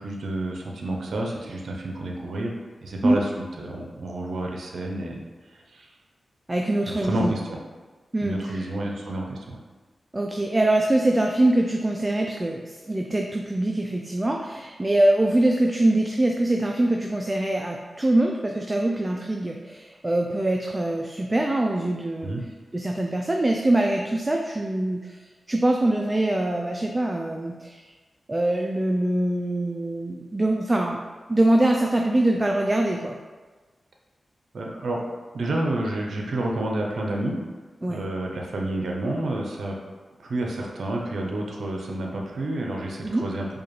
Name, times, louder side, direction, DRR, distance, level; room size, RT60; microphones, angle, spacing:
voice 1, 0.0-2.5 2.8-5.2 5.5-5.9 6.9-7.6 8.2-9.6 22.2-22.4 34.5-35.1 35.3-37.4 37.9-39.8 40.2-43.5, right 1 dB, 75° right, 0 dB, 0.6 m, -29 dB
voice 2, 6.5-7.3 8.1-8.7 10.1-22.3 22.7-25.2 25.5-27.9 28.3-31.0 31.3-33.1 37.8-38.0 43.0-43.2, right 1 dB, 30° right, 1 dB, 0.3 m, -23 dB
4.8 x 2.4 x 3.0 m, 1.3 s
cardioid pair, 50°, 0 cm